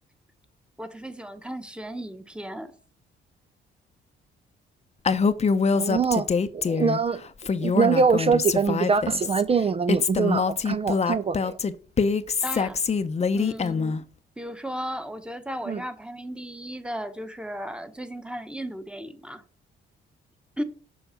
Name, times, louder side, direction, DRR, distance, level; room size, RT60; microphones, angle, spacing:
voice 1, 0.8-2.7 12.4-12.8 13.3-14.0 14.4-19.4 20.6-20.7, equal, 5° right, 1.1 m, -35 dB
Female speech woman speaking, 5.1-7.0 7.4-9.4 9.9-14.0, left 5 dB, 35° left, 0.7 m, -24 dB
voice 2, 5.7-7.2 7.6-11.6 15.7-15.8, right 5 dB, 30° right, 0.5 m, -24 dB
7.1 x 4.9 x 6.9 m
cardioid pair, 90°, 20 cm